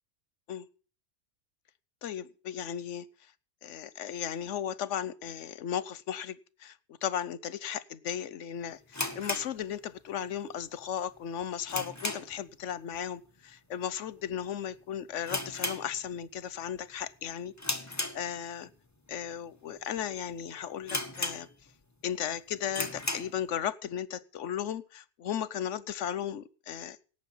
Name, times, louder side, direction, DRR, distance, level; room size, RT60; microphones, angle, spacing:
voice 1, 2.0-3.1 3.6-17.5 17.8-18.7 19.1-21.5 22.0-27.0, left 9 dB, 85° left, 18 dB, 1.1 m, -36 dB
sound 1, 8.9-10.3 10.5-10.6 11.2-12.5 12.8-13.1 13.4-13.5 14.2-14.4 14.7-14.8 15.2-16.4 16.7-17.0 17.6-18.7 19.3-19.4 20.0-20.1 20.3-20.4 20.9-21.8 22.2-22.3 22.7-23.4, left 2 dB, 15° left, 1.2 m, -35 dB
18.0 x 8.0 x 5.5 m, 0.38 s
omnidirectional pair, 1.2 m